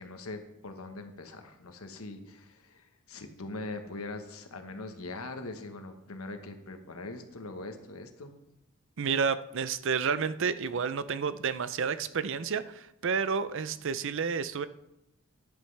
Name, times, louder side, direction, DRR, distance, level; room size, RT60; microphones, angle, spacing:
voice 1, 0.0-8.3, left 2 dB, 75° left, 6 dB, 1.3 m, -42 dB
voice 2, 9.0-14.7, right 6 dB, 60° right, 14 dB, 0.6 m, -30 dB
13.0 x 10.5 x 3.4 m, 0.86 s
head